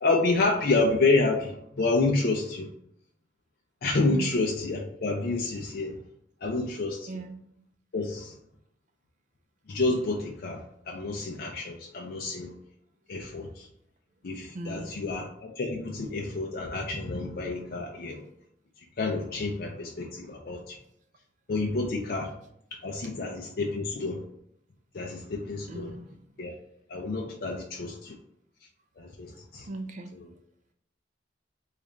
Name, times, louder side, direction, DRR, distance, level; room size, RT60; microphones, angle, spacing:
voice 1, 0.0-2.7 3.8-6.0 6.4-7.1 7.9-8.3 9.7-12.5 13.1-13.7 14.2-18.3 19.0-20.8 21.5-22.3 22.8-24.2 24.9-25.9 26.4-26.5 26.9-28.2 29.0-29.7 30.1-30.3, left 3 dB, 50° left, 0 dB, 0.5 m, -29 dB
voice 2, 4.1-4.4 7.1-7.4 14.5-15.0 25.7-26.2 29.7-30.1, right 2 dB, 40° right, 6 dB, 0.4 m, -38 dB
4.0 x 2.4 x 3.2 m, 0.74 s
head